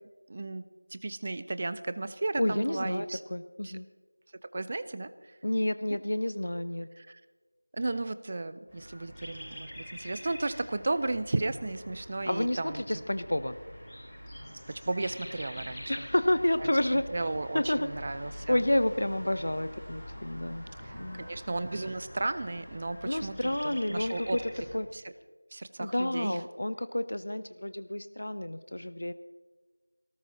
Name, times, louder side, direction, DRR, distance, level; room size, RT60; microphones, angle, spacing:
voice 1, 0.3-0.6 0.9-3.2 3.6-3.7 4.5-5.4 7.0-7.2 7.7-12.8 14.4-16.1 16.6-16.7 17.1-18.6 20.8-24.4 24.9-25.0 25.5-26.4, right 2 dB, 20° right, 13 dB, 0.4 m, -34 dB
voice 2, 2.4-3.9 5.4-6.9 12.2-13.6 15.9-17.1 17.5-17.9 18.5-20.7 21.0-21.3 23.0-24.4 24.7-24.9 25.8-29.1, left 1 dB, 50° left, 13 dB, 0.7 m, -30 dB
sound 1, 8.7-24.8, equal, 5° left, 3.6 m, -45 dB
22.5 x 18.5 x 3.0 m, 1.3 s
figure-of-eight pair, 175°, 0 cm